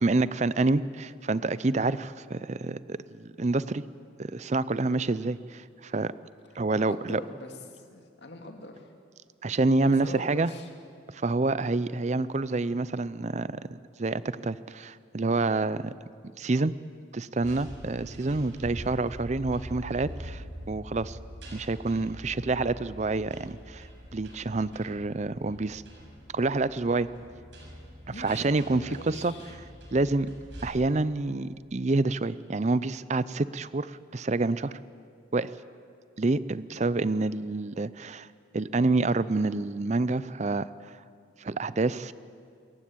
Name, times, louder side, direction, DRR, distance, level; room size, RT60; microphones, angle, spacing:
voice 1, 0.0-3.8 4.2-6.1 6.6-7.2 9.4-10.5 11.1-15.9 16.4-16.7 17.1-21.2 21.5-23.9 24.1-25.8 26.3-27.1 28.2-29.3 29.9-30.3 30.6-34.8 35.3-35.5 36.2-38.3 38.5-40.7 41.4-42.1, right 3 dB, 35° right, 17 dB, 0.5 m, -27 dB
voice 2, 6.8-8.9 9.8-10.7 28.1-29.5, left 2 dB, 60° left, 3 dB, 2.5 m, -43 dB
sound 1, 17.4-30.7, equal, 70° right, 6.6 m, -44 dB
27.5 x 15.0 x 8.6 m, 2.3 s
head